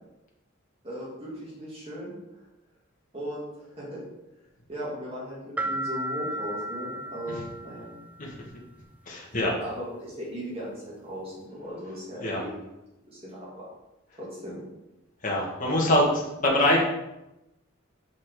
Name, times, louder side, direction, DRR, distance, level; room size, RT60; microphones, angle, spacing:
voice 1, 0.8-2.1 3.1-4.0 4.7-7.9 9.6-12.6 13.1-13.7 14.2-14.6, equal, 30° right, -6 dB, 2.8 m, -37 dB
sound 1, 5.6-8.2, right 1 dB, 10° right, 0.4 m, -34 dB
voice 2, 9.1-9.5 12.2-12.4 15.2-16.8, left 1 dB, 40° left, -3 dB, 1.9 m, -24 dB
5.9 x 5.8 x 5.0 m, 0.93 s
head